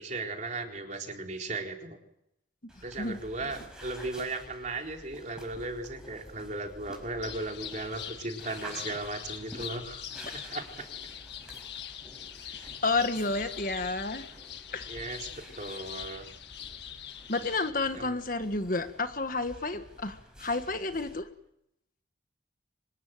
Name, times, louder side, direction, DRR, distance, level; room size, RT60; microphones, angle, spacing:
voice 1, 0.0-2.0 2.8-10.0 10.3-10.9 12.4-12.7 14.9-16.3 17.9-18.2, right 2 dB, 40° right, 2 dB, 4.0 m, -37 dB
sound 1, 2.7-21.2, equal, 5° right, 5.7 m, -50 dB
sound 2, 7.2-17.7, left 10 dB, 65° left, 2.0 m, -43 dB
voice 2, 12.8-14.3 14.7-14.9 17.3-21.3, left 3 dB, 45° left, 9 dB, 1.6 m, -30 dB
25.5 x 20.0 x 9.2 m, 0.80 s
head